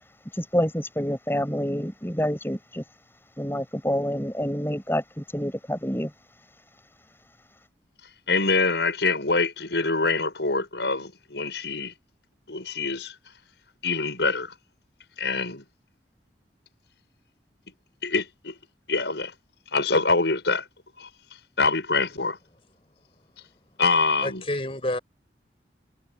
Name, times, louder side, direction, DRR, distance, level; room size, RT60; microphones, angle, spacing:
voice 1, 0.3-2.8 3.4-6.1, equal, 15° left, 5.6 m, -27 dB
voice 2, 8.3-11.9 12.5-13.1 13.8-14.5 15.2-15.6 18.0-18.5 18.9-19.3 19.7-20.6 21.0-21.1 21.6-22.4 23.8-24.4, left 3 dB, 85° left, 6.5 m, -25 dB
voice 3, 24.2-25.0, left 1 dB, 30° left, 5.0 m, -28 dB
head